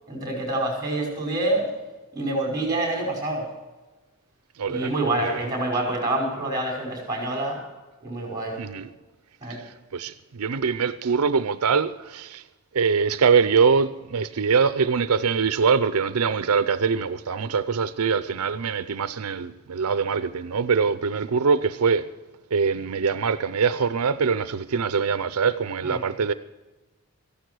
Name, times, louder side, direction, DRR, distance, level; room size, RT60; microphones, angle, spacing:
voice 1, 0.1-1.7 2.1-3.5 4.7-7.6 8.0-8.6 9.4-9.6 25.8-26.0, right 2 dB, 20° right, 5.5 m, -27 dB
voice 2, 4.6-4.9 5.2-5.4 8.6-8.9 9.5-12.4 12.7-22.1 22.5-26.3, right 5 dB, 80° right, 0.6 m, -23 dB
15.0 x 11.5 x 6.2 m
head